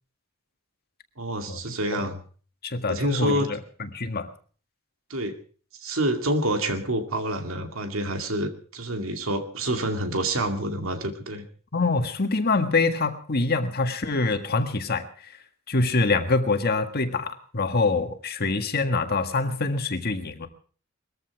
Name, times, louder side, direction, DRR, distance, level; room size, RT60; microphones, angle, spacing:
voice 1, 1.2-2.2 2.9-3.6 5.1-5.4 5.8-11.5, right 1 dB, 75° right, 6 dB, 2.4 m, -27 dB
voice 2, 2.6-4.3 11.7-15.3 15.7-20.5, left 3 dB, 50° left, 7 dB, 1.7 m, -25 dB
21.0 x 14.5 x 4.7 m, 0.42 s
head